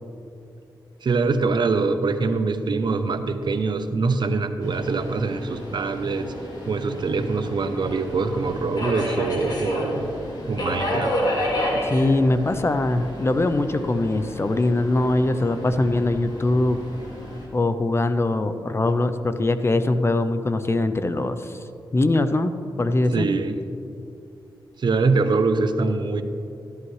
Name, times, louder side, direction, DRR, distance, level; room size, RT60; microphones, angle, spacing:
voice 1, 1.0-6.3 6.7-10.1 10.5-11.1 23.1-23.6 24.8-26.2, right 4 dB, 60° right, 8 dB, 0.8 m, -24 dB
Subway metro underground, 4.6-17.4, equal, 55° left, 3.1 m, -31 dB
voice 2, 11.8-16.8 17.5-21.6 21.9-22.5 22.8-23.3, left 2 dB, 30° left, 10 dB, 0.6 m, -22 dB
14.0 x 11.0 x 3.3 m, 2.6 s
cardioid pair, 75°, 9 cm